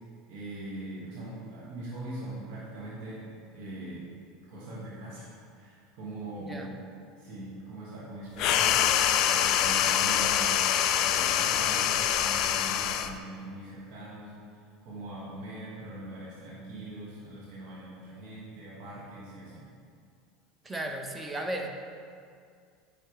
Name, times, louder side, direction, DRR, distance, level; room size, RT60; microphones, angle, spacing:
voice 1, 0.3-4.1 4.5-6.8 7.2-19.7, right 1 dB, 60° right, -8 dB, 1.7 m, -42 dB
voice 2, 6.4-6.7 20.6-21.7, right 1 dB, 15° right, 3 dB, 0.9 m, -35 dB
sound 1, 8.4-13.2, left 10 dB, 55° left, 0.3 m, -25 dB
9.0 x 5.5 x 3.2 m, 2.2 s
hypercardioid pair, 75°, 0 cm